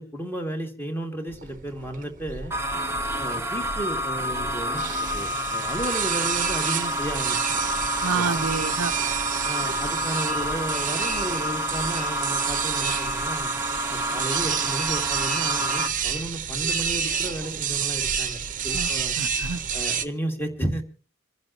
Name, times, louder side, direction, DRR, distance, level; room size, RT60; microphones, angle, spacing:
voice 1, 0.0-2.5 3.2-7.5 8.1-8.5 9.4-13.5 13.9-19.2 19.7-20.8, right 1 dB, 10° left, 2.4 m, -33 dB
sound 1, 1.3-20.0, right 7 dB, 40° right, 1.1 m, -30 dB
sound 2, 2.5-15.9, equal, 10° right, 1.2 m, -29 dB
voice 2, 8.0-8.9 18.7-18.9 19.2-19.6, right 5 dB, 80° right, 0.8 m, -28 dB
27.0 x 11.0 x 3.0 m
head